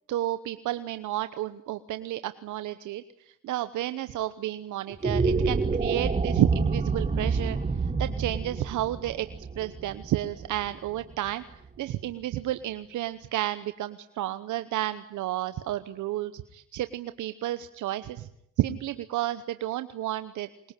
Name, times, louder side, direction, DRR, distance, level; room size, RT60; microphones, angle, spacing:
voice 1, 0.1-9.3 9.6-18.3 18.6-20.7, right 13 dB, 80° right, 12 dB, 1.0 m, -31 dB
sound 1, 4.9-11.3, right 4 dB, 25° right, 1.6 m, -28 dB
22.0 x 21.5 x 9.1 m, 0.76 s
cardioid pair, 90°, 30 cm